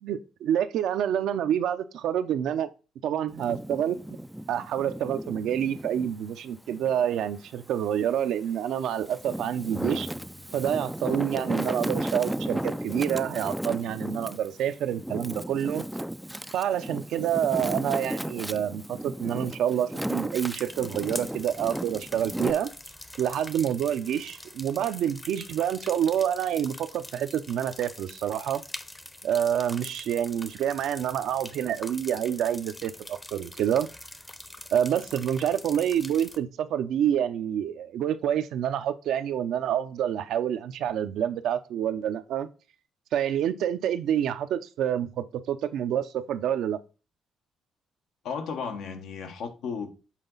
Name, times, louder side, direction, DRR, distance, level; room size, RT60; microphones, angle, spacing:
voice 1, 0.0-2.7 3.0-4.0 4.5-10.1 10.5-15.9 16.5-22.7 23.2-28.6 29.2-33.9 34.7-42.5 43.1-46.8, right 9 dB, 80° right, 0.6 m, -27 dB
Wind, 3.3-6.1 6.6-7.9 8.5-22.5, right 1 dB, 5° right, 0.3 m, -35 dB
Drum, 9.7-12.1, left 2 dB, 40° left, 1.0 m, -49 dB
sound 1, 20.5-36.4, left 1 dB, 15° left, 0.7 m, -44 dB
voice 2, 48.2-49.9, left 6 dB, 80° left, 1.2 m, -34 dB
7.5 x 4.0 x 3.9 m
cardioid pair, 90°, 0 cm